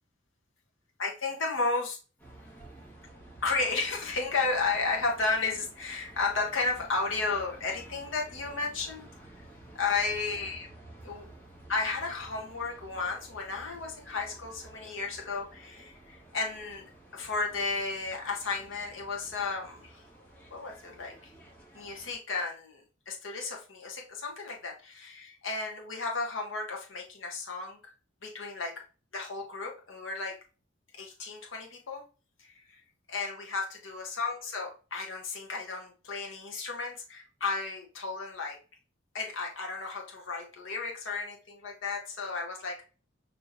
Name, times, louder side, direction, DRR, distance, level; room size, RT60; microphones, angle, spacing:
voice 1, 1.0-2.0 3.4-9.1 9.4-9.5 9.7-10.7 11.0-11.3 11.7-20.0 20.5-21.3 21.7-27.8 28.2-28.7 29.1-30.4 31.0-32.0 32.4-32.8 33.1-38.6 39.1-42.8, left 4 dB, 80° left, 1 dB, 1.1 m, -33 dB
sound 1, 2.2-22.1, right 1 dB, 10° left, 1.5 m, -52 dB
5.4 x 3.0 x 2.7 m, 0.34 s
head